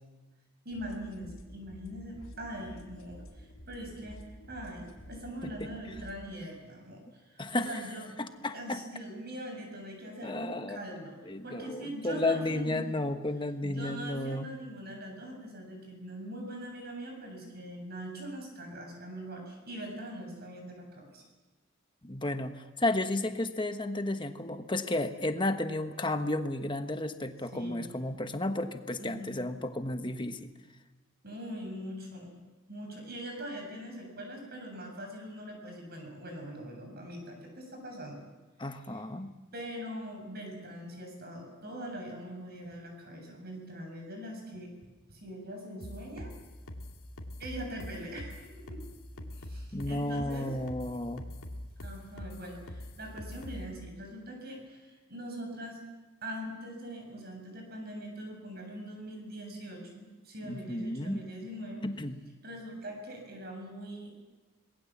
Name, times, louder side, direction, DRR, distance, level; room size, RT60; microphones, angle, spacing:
sound 1, 0.7-6.2, equal, 70° left, 3.9 m, -50 dB
voice 1, 0.7-8.1 8.5-12.8 13.6-21.2 27.5-27.9 29.0-29.3 31.2-32.3 32.7-38.2 38.8-39.0 39.5-44.7 45.1-46.3 47.4-48.8 49.3-50.5 51.8-55.8 56.2-61.8 62.4-64.1, right 1 dB, 45° right, 2 dB, 7.1 m, -42 dB
voice 2, 7.4-7.7 8.2-8.8 10.2-10.8 11.3-14.5 22.0-30.5 38.6-39.3 49.7-51.3 60.4-61.2 61.8-62.2, left 2 dB, 20° left, 7 dB, 1.3 m, -33 dB
sound 2, 45.8-53.7, left 1 dB, 85° left, 2.6 m, -43 dB
26.5 x 20.5 x 7.4 m, 1.2 s
head